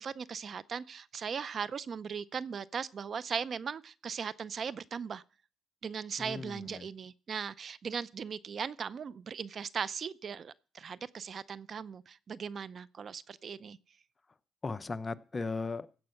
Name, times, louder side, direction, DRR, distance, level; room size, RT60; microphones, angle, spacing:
voice 1, 0.0-5.2 5.8-13.8, right 6 dB, 50° right, 0.5 m, -38 dB
voice 2, 6.2-6.9 14.6-15.9, left 3 dB, 30° left, 0.7 m, -37 dB
15.5 x 5.4 x 7.8 m
cardioid pair, 90°, 0 cm